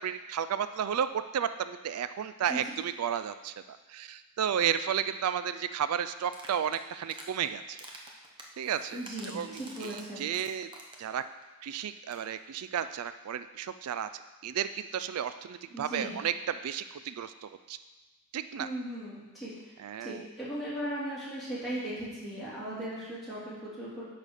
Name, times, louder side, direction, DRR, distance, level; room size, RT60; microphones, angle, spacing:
voice 1, 0.0-7.8 8.6-9.0 9.3-9.9 10.2-10.7 11.0-11.2 11.6-14.1 14.4-17.8 18.3-18.7 19.8-20.2, right 8 dB, 90° right, 11 dB, 0.4 m, -33 dB
sound 1, 6.3-7.3 7.7-11.1 11.4-11.5 11.8-11.9 12.0-12.3, right 2 dB, 20° right, 0.9 m, -48 dB
voice 2, 8.9-10.3 15.7-16.1 18.6-19.7 20.0-24.0, right 1 dB, ahead, -11 dB, 3.3 m, -38 dB
9.8 x 4.2 x 6.4 m, 1.2 s
head